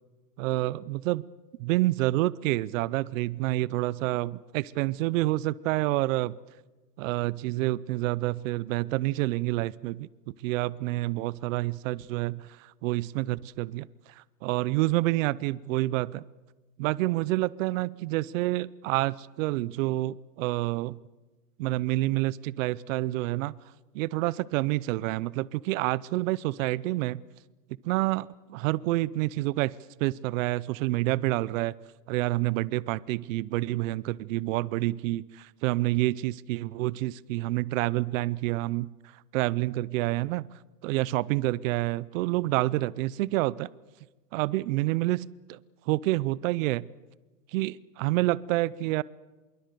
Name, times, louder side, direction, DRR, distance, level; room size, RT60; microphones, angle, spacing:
voice 1, 0.4-1.2 1.6-6.3 7.0-16.2 16.8-21.0 21.6-23.6 23.9-27.2 27.8-29.7 30.0-31.7 32.1-38.9 39.3-40.5 40.8-43.7 44.3-45.6 45.9-46.8 47.5-49.0, right 18 dB, 55° right, 21 dB, 0.7 m, -28 dB
25.0 x 23.0 x 6.8 m, 1.2 s
supercardioid pair, 135°, 47 cm